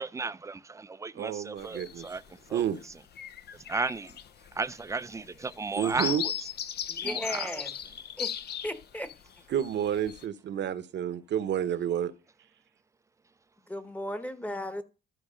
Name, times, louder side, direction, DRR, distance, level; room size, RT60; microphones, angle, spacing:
voice 1, 0.0-2.2 2.5-2.6 3.7-4.1 4.6-6.1 7.0-7.6, right 4 dB, 15° right, 0.4 m, -34 dB
voice 2, 1.1-2.1 2.5-2.8 5.8-6.2 9.5-12.1, right 9 dB, 65° right, 0.9 m, -30 dB
sound 1, 1.6-2.2 2.7-2.8 3.1-9.1 9.6-10.2, left 9 dB, 55° left, 0.6 m, -37 dB
voice 3, 6.9-7.8 8.2-9.1 13.7-14.8, left 1 dB, 5° left, 1.0 m, -36 dB
13.0 x 4.7 x 5.0 m
cardioid pair, 90°, 20 cm